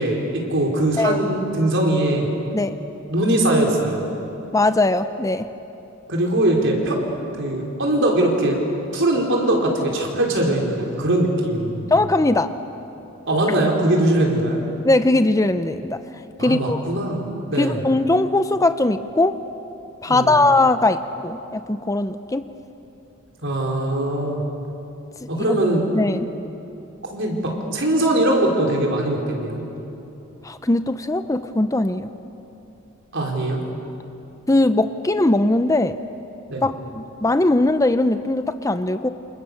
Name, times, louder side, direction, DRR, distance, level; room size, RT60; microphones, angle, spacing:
voice 1, 0.0-2.3 3.1-4.0 6.1-7.0 7.4-8.6 8.9-11.9 13.3-14.6 16.4-17.8 20.1-20.4 23.4-24.4 25.3-25.8 27.1-29.6 33.1-33.6 36.5-36.6, right 1 dB, 60° right, 0 dB, 4.8 m, -21 dB
voice 2, 4.5-5.5 11.9-12.5 14.8-16.0 16.4-16.8 17.6-19.4 20.0-22.4 25.2-25.6 25.9-26.3 30.4-32.1 34.5-36.0 36.6-39.1, left 2 dB, 15° left, 10 dB, 0.6 m, -20 dB
28.5 x 28.0 x 7.1 m, 2.9 s
head